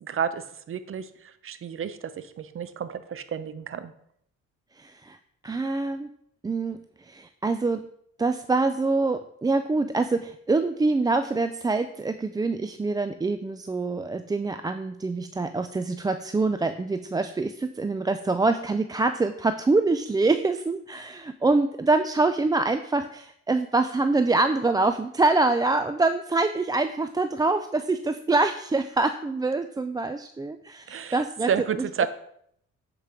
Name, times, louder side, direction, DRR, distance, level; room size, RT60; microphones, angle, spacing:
voice 1, 0.0-3.9 30.9-32.1, right 7 dB, 45° right, 12 dB, 0.8 m, -31 dB
voice 2, 4.8-5.2 5.4-6.1 6.4-7.9 8.2-31.5 31.8-32.1, right 3 dB, 15° right, 9 dB, 0.3 m, -25 dB
8.1 x 4.8 x 5.0 m, 0.69 s
cardioid pair, 90°, 30 cm